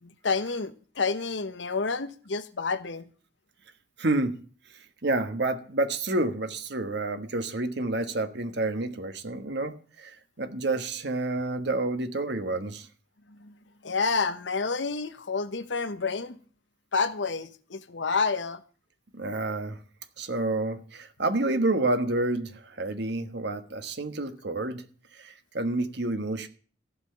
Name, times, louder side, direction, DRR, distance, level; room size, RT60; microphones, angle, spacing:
voice 1, 0.0-3.1 13.4-13.5 13.8-16.4 16.9-18.6, left 4 dB, 75° left, 1.0 m, -29 dB
voice 2, 4.0-4.3 4.7-12.9 19.1-19.8 20.2-24.8 25.2-26.5, right 2 dB, 65° right, 1.3 m, -29 dB
15.0 x 5.9 x 8.6 m
head